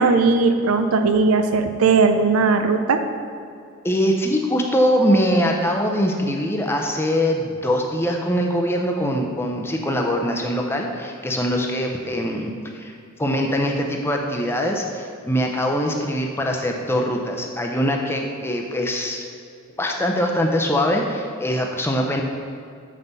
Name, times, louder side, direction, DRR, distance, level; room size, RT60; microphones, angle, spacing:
voice 1, 0.0-3.0, right 4 dB, 80° right, 7 dB, 0.5 m, -18 dB
voice 2, 3.8-19.2 19.8-22.2, equal, 10° left, 1 dB, 0.6 m, -22 dB
7.4 x 5.5 x 4.0 m, 2.4 s
head